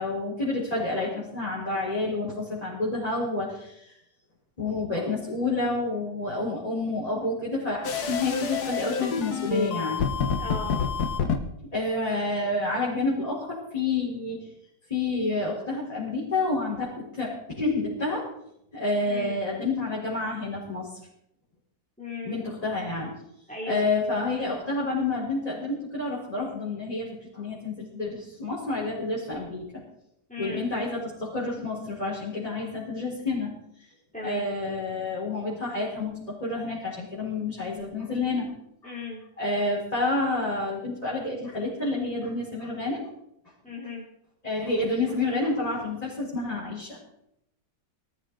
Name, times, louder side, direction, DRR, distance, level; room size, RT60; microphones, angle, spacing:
voice 1, 0.0-3.9 4.6-10.1 11.7-14.4 14.9-17.3 17.6-18.2 18.7-20.9 22.2-23.1 23.6-29.7 30.4-33.5 34.2-38.5 38.8-38.9 39.4-43.0 44.4-47.0, left 2 dB, 20° left, -6 dB, 4.3 m, -29 dB
sound 1, 7.8-11.4, left 6 dB, 65° left, 1.8 m, -28 dB
voice 2, 10.4-10.9 19.0-19.4 22.0-22.4 23.5-23.9 30.3-30.6 34.1-34.5 38.8-39.2 43.6-44.1, left 3 dB, 5° left, -5 dB, 2.8 m, -36 dB
19.0 x 13.5 x 3.9 m, 0.78 s
omnidirectional pair, 1.9 m